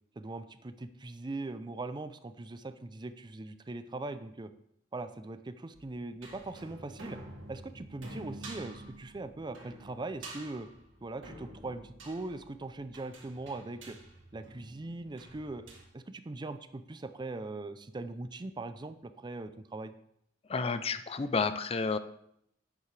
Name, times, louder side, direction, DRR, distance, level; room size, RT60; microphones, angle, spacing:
voice 1, 0.2-4.5 4.9-7.2 7.5-10.7 11.0-14.0 14.3-19.9, right 2 dB, 25° right, 11 dB, 0.5 m, -41 dB
sound 1, 5.7-15.9, right 1 dB, 85° right, 2.0 m, -49 dB
voice 2, 20.5-22.0, left 4 dB, 30° left, 11 dB, 0.4 m, -30 dB
10.5 x 8.2 x 3.3 m, 0.73 s
head